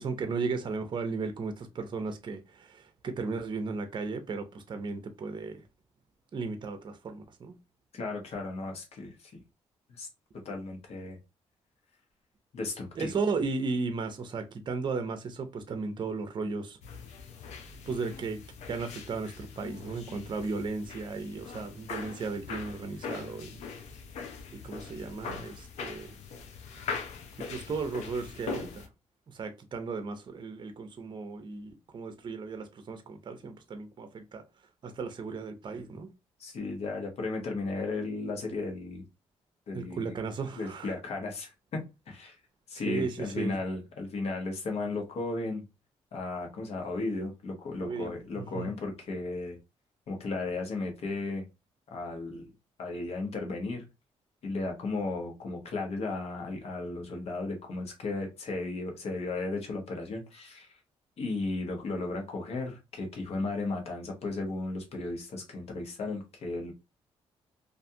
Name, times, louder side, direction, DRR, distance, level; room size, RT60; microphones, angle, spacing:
voice 1, 0.0-5.6 6.3-7.5 13.0-16.8 17.9-18.4 18.7-23.6 24.5-26.2 27.4-28.9 29.3-34.4 34.8-36.1 39.7-40.9 42.8-43.6 47.8-48.8, right 4 dB, 45° right, 0.5 m, -35 dB
voice 2, 7.9-9.4 10.0-10.1 10.4-11.2 12.5-13.2 36.4-39.0 39.7-40.1 40.6-41.8 42.1-42.4 42.7-45.6 46.1-49.6 50.1-51.4 51.9-52.5 52.8-53.8 54.4-60.8 61.2-66.7, left 3 dB, 65° left, 1.0 m, -35 dB
sound 1, 16.8-28.9, left 5 dB, 85° left, 0.5 m, -41 dB
2.5 x 2.3 x 2.7 m
cardioid pair, 85°, 11 cm